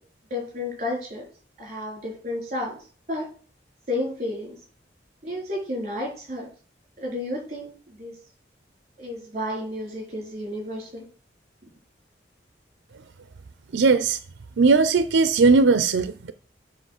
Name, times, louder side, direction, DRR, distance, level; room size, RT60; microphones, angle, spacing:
voice 1, 0.3-1.3 1.6-2.7 3.1-3.3 3.9-4.6 5.2-6.5 7.0-7.7 8.0-8.1 9.0-11.0, left 1 dB, 40° right, 4.0 m, -31 dB
voice 2, 13.7-14.2 14.6-16.3, right 4 dB, 90° right, 0.5 m, -18 dB
7.8 x 4.1 x 6.5 m
head